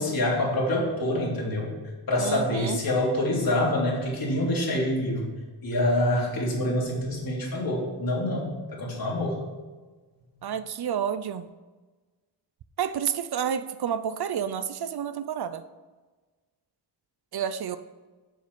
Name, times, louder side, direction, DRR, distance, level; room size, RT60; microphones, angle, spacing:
voice 1, 0.0-1.7 2.1-5.3 5.6-9.4, left 1 dB, 50° left, -3 dB, 3.3 m, -26 dB
voice 2, 2.2-2.8 10.4-11.5 12.8-15.6 17.3-17.8, right 8 dB, 60° right, 12 dB, 0.6 m, -30 dB
7.3 x 7.0 x 6.2 m, 1.3 s
cardioid pair, 90°, 44 cm